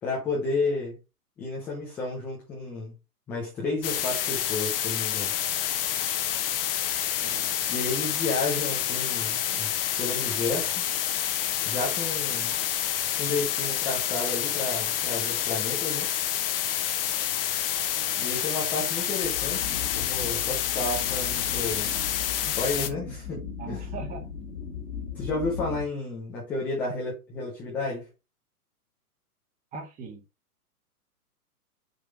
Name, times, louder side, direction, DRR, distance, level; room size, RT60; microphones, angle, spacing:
voice 1, 0.0-1.0 1.4-2.9 3.3-5.3 7.7-10.8 11.6-12.6 13.2-16.1 18.2-19.7 19.9-21.9 22.4-23.4 23.7-23.8 25.1-28.1, left 3 dB, 5° left, 0.4 m, -31 dB
sound 1, 3.8-22.9, left 11 dB, 40° left, 1.0 m, -28 dB
voice 2, 7.2-7.6 18.0-18.3 20.2-20.4 22.4-22.6 23.6-24.3 29.7-30.2, right 4 dB, 15° right, 1.4 m, -41 dB
sound 2, 19.2-25.8, left 6 dB, 85° left, 2.9 m, -38 dB
6.8 x 3.4 x 5.0 m
hypercardioid pair, 130°, 46 cm